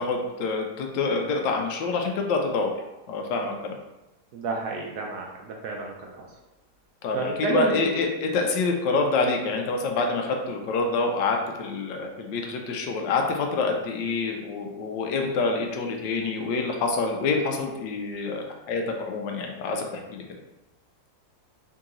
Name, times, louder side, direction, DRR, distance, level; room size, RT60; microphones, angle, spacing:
voice 1, 0.0-2.7 3.1-3.8 7.0-20.2, left 3 dB, 80° left, 2 dB, 1.2 m, -27 dB
voice 2, 4.3-6.3 7.1-7.9, right 3 dB, 70° right, 0 dB, 1.0 m, -30 dB
3.8 x 2.8 x 3.7 m, 0.97 s
omnidirectional pair, 2.0 m